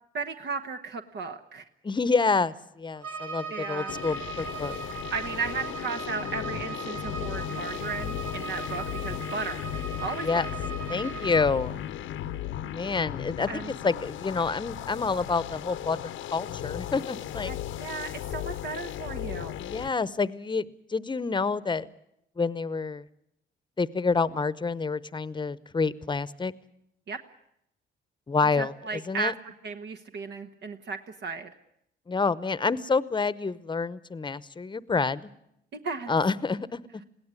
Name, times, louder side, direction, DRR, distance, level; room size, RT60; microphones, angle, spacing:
voice 1, 0.1-1.7 3.5-3.9 5.1-9.7 10.0-10.4 13.5-13.7 17.5-19.6 27.1-27.2 28.6-29.3 29.6-31.5 35.7-36.1, right 5 dB, 65° right, 6 dB, 1.3 m, -35 dB
voice 2, 1.8-4.8 10.2-10.5 10.9-11.9 12.7-16.0 16.3-17.5 19.6-21.9 22.4-23.1 23.8-26.5 28.3-29.3 32.1-35.3 36.1-36.8, left 4 dB, 25° left, 17 dB, 0.9 m, -28 dB
Bowed string instrument, 3.0-11.6, right 4 dB, 90° right, 5.6 m, -38 dB
sound 1, 3.9-19.9, left 12 dB, 90° left, 1.1 m, -36 dB
21.5 x 17.0 x 9.8 m, 0.79 s
cardioid pair, 90°, 20 cm